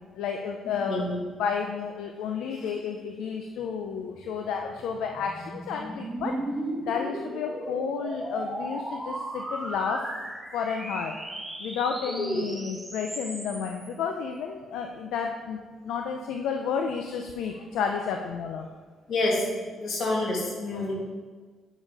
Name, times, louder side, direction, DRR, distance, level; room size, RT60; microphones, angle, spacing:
voice 1, 0.1-1.1 1.4-6.4 6.8-10.1 10.5-11.2 11.6-18.8 20.7-20.9, left 6 dB, 85° left, 4 dB, 0.5 m, -31 dB
sound 1, 4.2-13.9, right 1 dB, 5° right, 1.5 m, -36 dB
voice 2, 19.1-19.4 19.8-20.9, left 2 dB, 65° left, -2 dB, 2.3 m, -27 dB
8.4 x 5.5 x 4.8 m, 1.4 s
cardioid pair, 90°, 0 cm